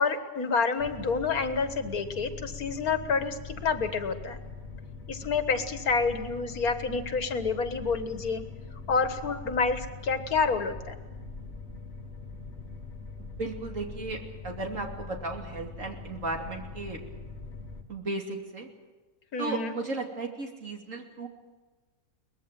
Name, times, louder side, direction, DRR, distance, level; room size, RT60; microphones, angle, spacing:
voice 1, 0.0-4.4 5.1-8.4 8.9-11.0 19.3-19.8, left 4 dB, 80° left, 9 dB, 2.0 m, -28 dB
sound 1, 0.8-17.8, left 3 dB, 45° left, 2.4 m, -42 dB
voice 2, 13.4-14.2 14.4-17.0 17.9-18.7 19.4-21.3, right 3 dB, 60° right, 2 dB, 3.2 m, -35 dB
23.0 x 20.0 x 7.6 m, 1.2 s
omnidirectional pair, 1.5 m